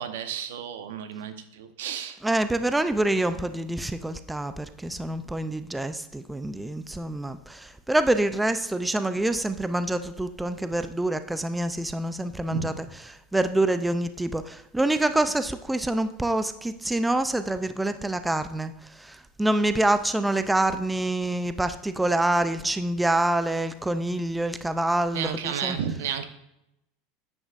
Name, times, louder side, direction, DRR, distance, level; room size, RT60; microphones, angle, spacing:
voice 1, 0.0-2.2 12.5-12.7 25.1-26.2, right 8 dB, 85° right, 9 dB, 0.9 m, -32 dB
voice 2, 2.2-12.8 13.3-18.7 19.0-25.8, right 1 dB, 5° right, 10 dB, 0.4 m, -26 dB
9.5 x 8.0 x 2.5 m, 0.85 s
supercardioid pair, 125°, 0 cm